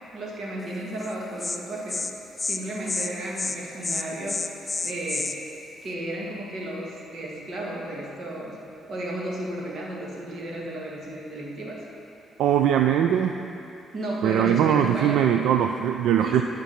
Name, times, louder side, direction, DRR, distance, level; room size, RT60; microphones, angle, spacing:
voice 1, 0.1-2.0 2.5-4.4 4.8-5.4 5.8-8.6 8.9-11.9 13.9-15.2 16.2-16.4, right 1 dB, 55° right, -2 dB, 1.9 m, -33 dB
Insect, 1.0-1.1 1.4-1.6 1.9-2.1 2.4-2.6 2.9-3.1 3.4-3.6 3.8-5.3, left 3 dB, 25° left, 0.5 m, -29 dB
voice 2, 12.4-13.4 14.2-16.4, right 9 dB, 85° right, 5 dB, 0.3 m, -21 dB
11.5 x 5.2 x 5.7 m, 2.6 s
cardioid pair, 90°, 0 cm